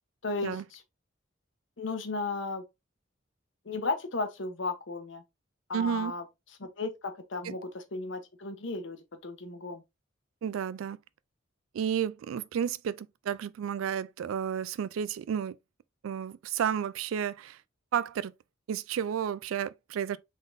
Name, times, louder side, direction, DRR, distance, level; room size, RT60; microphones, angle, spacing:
voice 1, 0.2-0.8 1.8-2.6 3.7-5.2 5.7-6.2 6.6-9.8, left 3 dB, 65° left, 0.8 m, -35 dB
voice 2, 5.7-6.1 7.4-7.5 10.4-11.0 11.7-15.5 16.0-17.6 17.9-18.3 18.7-20.2, right 8 dB, 90° right, 0.3 m, -32 dB
3.9 x 3.7 x 2.5 m
head